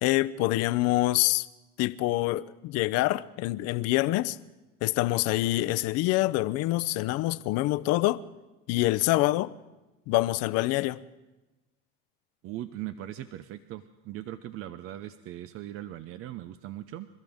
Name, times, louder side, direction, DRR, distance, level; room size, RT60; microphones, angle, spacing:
voice 1, 0.0-1.5 1.8-4.4 4.8-8.2 8.7-9.5 10.1-11.0, left 18 dB, 55° left, 0.7 m, -26 dB
voice 2, 12.4-17.1, right 13 dB, 45° right, 0.7 m, -39 dB
27.0 x 13.5 x 3.6 m
hypercardioid pair, 90°, 29 cm